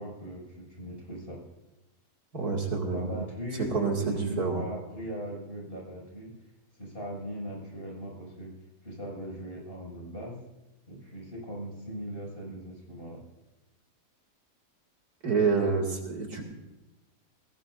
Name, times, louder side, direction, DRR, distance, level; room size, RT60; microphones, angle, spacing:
voice 1, 0.0-1.4 2.9-6.3 6.7-8.5 8.8-10.4 10.9-13.2, equal, 35° left, -2 dB, 6.6 m, -39 dB
voice 2, 2.3-3.1 3.7-4.6 15.2-16.4, right 5 dB, 70° right, 0 dB, 2.9 m, -28 dB
20.5 x 18.0 x 2.6 m, 1.0 s
omnidirectional pair, 1.7 m